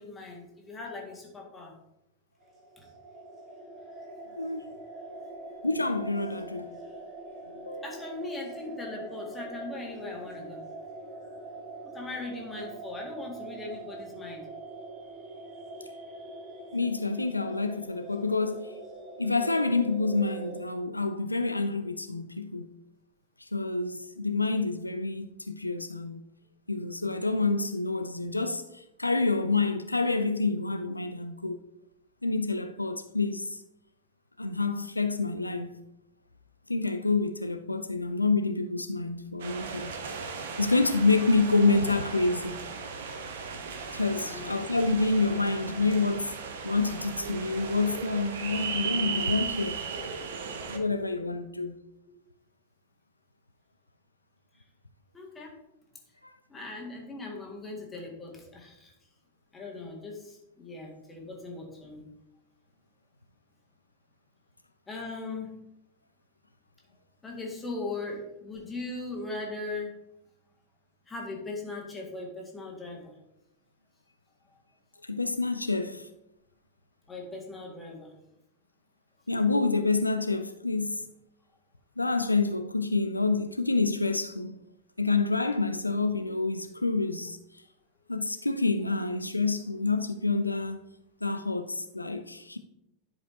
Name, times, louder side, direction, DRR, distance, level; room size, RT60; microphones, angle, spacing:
voice 1, 0.0-1.8 2.8-2.9 7.8-10.6 11.8-14.5 44.2-44.5 54.5-54.6 55.1-55.6 56.5-58.9 59.5-62.0 64.9-65.5 67.2-70.0 71.1-73.1 74.5-74.6 77.1-78.1, left 3 dB, 15° left, 1.8 m, -39 dB
sound 1, 2.4-20.6, right 2 dB, 30° right, 1.6 m, -43 dB
voice 2, 5.6-6.8 7.6-7.9 16.7-18.8 19.2-22.7 23.4-26.2 26.7-31.6 32.2-33.6 34.4-35.7 36.7-39.9 40.6-42.6 43.9-46.3 46.6-49.8 50.7-51.7 75.1-76.1 79.3-81.0 82.0-84.6 85.0-87.4 88.1-90.8 91.2-92.6, left 3 dB, 85° left, 0.3 m, -28 dB
sound 2, 39.4-50.8, right 5 dB, 60° right, 0.9 m, -36 dB
11.0 x 5.0 x 2.8 m
figure-of-eight pair, 90°, 0 cm